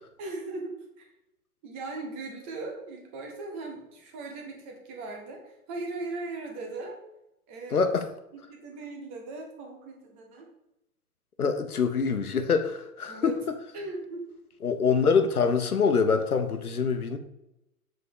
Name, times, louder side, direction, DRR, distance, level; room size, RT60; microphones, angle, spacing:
voice 1, 0.2-0.7 1.0-1.1 1.6-7.0 7.5-7.8 8.5-10.5 13.1-13.3 13.7-14.3, right 3 dB, 10° right, 2 dB, 0.4 m, -38 dB
voice 2, 7.7-8.1 11.4-13.3 14.6-17.2, left 5 dB, 80° left, 8 dB, 1.0 m, -25 dB
7.2 x 4.1 x 4.9 m, 0.88 s
figure-of-eight pair, 115°, 44 cm